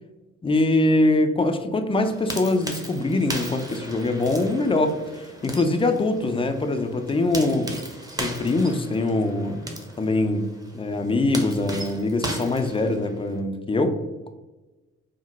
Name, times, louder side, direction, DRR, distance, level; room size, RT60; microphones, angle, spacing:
voice 1, 0.4-7.7 8.2-9.6 10.0-10.5 10.7-14.0, left 2 dB, 15° left, 7 dB, 0.4 m, -23 dB
sound 1, 1.9-13.4, right 1 dB, 10° right, 0.7 m, -37 dB
2.9 x 2.1 x 3.9 m, 1.1 s
hypercardioid pair, 55°, 33 cm